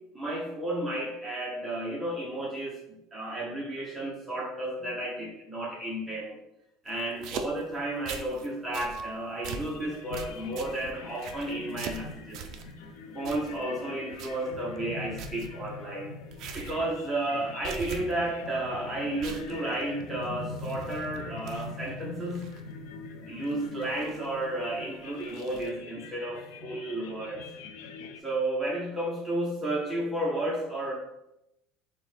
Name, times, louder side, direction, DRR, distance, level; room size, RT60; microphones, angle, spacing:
voice 1, 0.1-6.4 6.8-12.4 13.1-16.1 16.5-22.5 22.9-23.0 23.3-27.4 28.2-30.9, right 1 dB, 10° right, -5 dB, 0.7 m, -32 dB
sound 1, 6.9-8.5 8.7-9.0 9.4-9.8 10.1-12.7 13.2-13.8 14.1-14.5 14.8-14.9 15.2-15.5 16.3-16.8 17.1-17.4 17.6-18.3 18.6-18.7 19.2-21.2 21.5-22.6 23.4-24.4 25.1-25.7, right 6 dB, 45° right, 0.4 m, -42 dB
Piano, 8.7-10.7 11.3-11.4, right 2 dB, 25° left, 0.9 m, -43 dB
sound 2, 9.5-28.2, left 4 dB, 70° left, 0.5 m, -43 dB
6.0 x 2.1 x 3.3 m, 0.88 s
cardioid pair, 170°, 0 cm